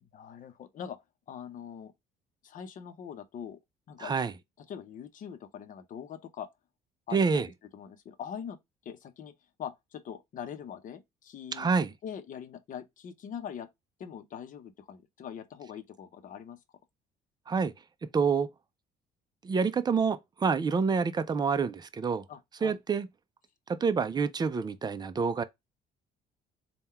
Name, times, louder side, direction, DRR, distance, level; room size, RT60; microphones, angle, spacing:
voice 1, 0.0-1.0 1.3-1.9 2.4-3.6 3.9-4.1 4.7-6.5 7.1-7.2 7.7-8.6 8.8-9.3 9.6-11.7 12.0-13.7 14.0-16.6 22.3-22.8, left 8 dB, 50° left, 0.7 m, -42 dB
voice 2, 4.0-4.3 7.1-7.5 11.5-11.9 17.5-17.7 18.1-18.5 19.4-22.2 22.6-23.1 23.7-25.4, right 5 dB, 25° right, 0.5 m, -27 dB
3.7 x 2.3 x 4.3 m
cardioid pair, 110°, 17 cm